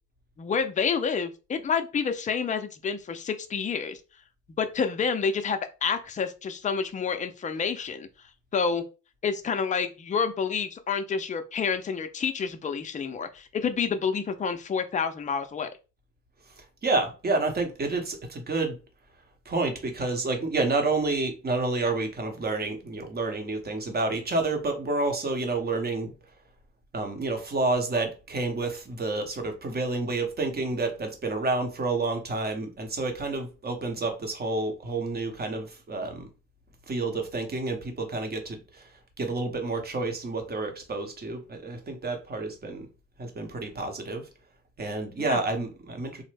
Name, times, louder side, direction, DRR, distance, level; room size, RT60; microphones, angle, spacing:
voice 1, 0.4-4.0 4.6-8.1 8.5-8.8 9.2-15.7 45.2-45.4, left 6 dB, 25° left, 0.4 m, -28 dB
voice 2, 16.6-18.8 19.4-26.1 26.9-36.3 36.9-38.9 39.2-42.9 43.2-44.3 44.8-46.2, right 3 dB, 30° right, 0.8 m, -29 dB
3.1 x 2.0 x 3.2 m
cardioid pair, 90°, 30 cm